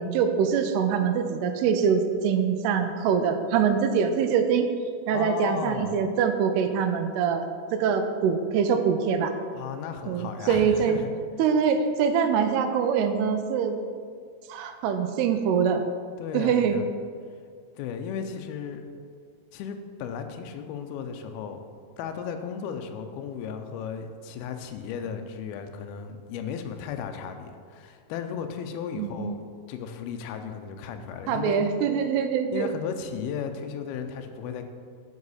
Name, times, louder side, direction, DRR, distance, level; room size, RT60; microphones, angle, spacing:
voice 1, 0.0-4.7 5.1-7.5 7.7-9.3 10.1-11.0 11.4-13.8 14.5-15.8 16.3-16.8 29.0-29.4 31.3-32.7, right 7 dB, 80° right, 7 dB, 2.5 m, -24 dB
voice 2, 5.1-6.0 9.5-11.1 16.2-16.8 17.8-18.9 19.5-21.7 22.0-31.6 32.5-34.6, left 7 dB, 80° left, 6 dB, 2.3 m, -35 dB
9.6 x 5.3 x 4.1 m, 2.1 s
omnidirectional pair, 4.8 m